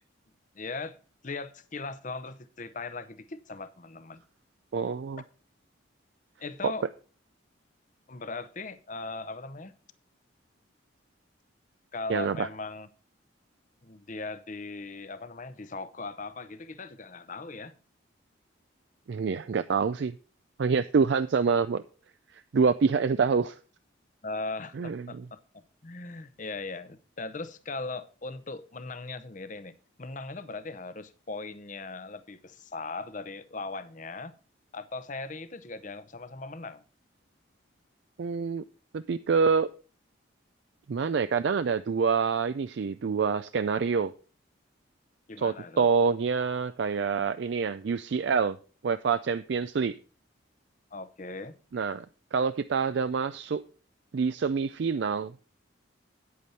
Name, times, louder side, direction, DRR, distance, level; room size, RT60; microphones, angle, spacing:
voice 1, 0.5-1.0 1.2-4.2 6.4-6.9 8.1-9.7 11.9-12.9 13.8-17.8 24.2-25.4 25.8-34.3 34.7-36.8 45.3-45.8 50.9-51.6, left 3 dB, 40° left, 0.7 m, -39 dB
voice 2, 4.7-5.2 6.6-6.7 12.1-12.5 19.1-20.1 20.6-21.8 22.3-23.6 24.8-25.3 38.2-38.6 38.9-39.7 40.9-44.1 45.4-48.6 48.8-49.9 51.7-52.1 52.3-53.6 54.1-55.3, right 5 dB, 60° right, 0.4 m, -26 dB
9.2 x 8.5 x 4.2 m
head